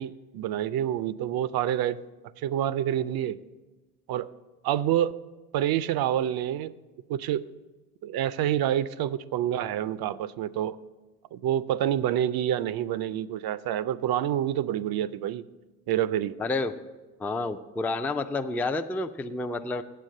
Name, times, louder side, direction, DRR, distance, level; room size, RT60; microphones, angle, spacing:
voice 1, 0.0-2.0 2.4-3.4 4.1-4.3 4.6-5.1 5.5-6.7 7.1-7.5 8.0-10.8 11.3-15.4 15.9-16.4, right 11 dB, 65° right, 0.5 m, -27 dB
voice 2, 16.4-16.8 17.2-19.8, left 3 dB, 5° left, 0.3 m, -29 dB
7.6 x 7.5 x 6.4 m
supercardioid pair, 75°, 40 cm